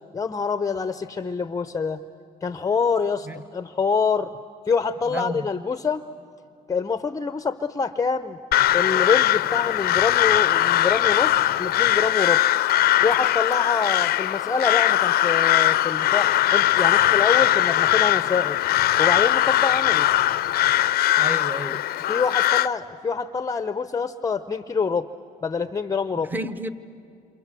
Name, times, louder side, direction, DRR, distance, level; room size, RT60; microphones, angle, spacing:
voice 1, 0.1-2.0 2.4-3.3 3.5-4.3 4.7-6.0 6.7-8.4 8.7-12.4 13.0-18.6 19.0-20.1 22.1-25.1 25.4-26.3, left 5 dB, 20° left, 12 dB, 0.8 m, -25 dB
voice 2, 5.1-5.5 21.2-21.8 26.2-26.7, right 1 dB, 10° right, 11 dB, 1.1 m, -31 dB
Crow, 8.5-22.7, left 14 dB, 65° left, 0.6 m, -20 dB
28.5 x 27.0 x 7.6 m, 2.4 s
cardioid pair, 110°, 17 cm